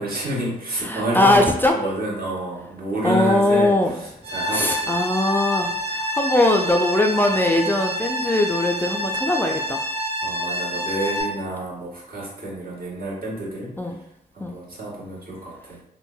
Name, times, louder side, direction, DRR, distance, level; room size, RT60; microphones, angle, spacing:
voice 1, 0.0-1.4 1.7-5.0 10.2-13.7 14.3-15.8, right 1 dB, 55° right, -5 dB, 1.2 m, -29 dB
voice 2, 0.8-1.8 3.0-3.9 4.5-9.8 13.8-14.0 14.4-14.5, left 1 dB, 10° left, 1 dB, 0.3 m, -20 dB
sound 1, 4.2-11.2, equal, 70° right, 1.0 m, -27 dB
3.1 x 2.1 x 2.2 m, 0.75 s
supercardioid pair, 45°, 18 cm